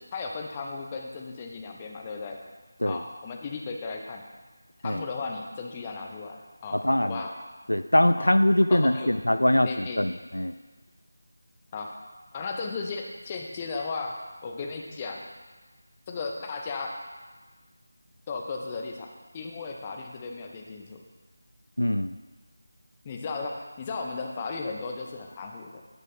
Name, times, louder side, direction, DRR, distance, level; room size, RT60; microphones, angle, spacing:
voice 1, 0.1-2.4 2.9-4.2 4.8-7.3 8.2-8.3 8.7-9.1 9.6-10.0 11.7-11.9 12.3-14.1 14.4-15.2 16.1-16.9 18.3-21.0 23.0-25.8, left 4 dB, 20° left, 2 dB, 0.8 m, -35 dB
voice 2, 6.7-7.2 7.7-10.5 21.8-22.2, left 1 dB, 75° left, 11 dB, 0.4 m, -23 dB
9.3 x 6.3 x 5.8 m, 1.3 s
figure-of-eight pair, 165°, 0 cm